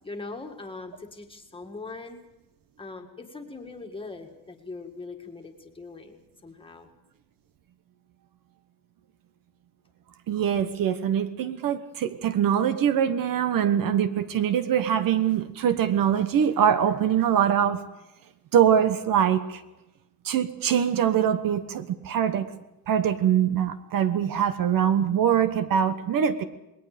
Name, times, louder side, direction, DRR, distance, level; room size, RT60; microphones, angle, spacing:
voice 1, 0.0-2.2 2.8-6.9, left 3 dB, 15° left, 3 dB, 1.9 m, -41 dB
voice 2, 10.3-17.8 18.5-19.6 20.2-22.5 22.9-26.4, right 9 dB, 60° right, 11 dB, 1.1 m, -23 dB
27.5 x 20.5 x 5.1 m, 0.94 s
cardioid pair, 165°, 38 cm